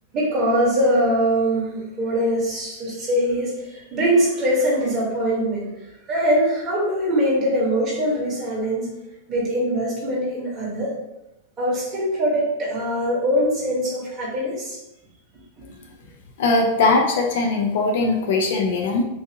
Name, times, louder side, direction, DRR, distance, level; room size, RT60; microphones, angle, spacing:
voice 1, 0.1-5.7 6.1-8.9 9.3-10.9 11.6-14.8, equal, 20° right, -5 dB, 1.1 m, -22 dB
voice 2, 16.4-19.0, left 3 dB, 55° left, 2 dB, 0.5 m, -20 dB
3.9 x 2.7 x 2.7 m, 0.91 s
supercardioid pair, 170°, 0 cm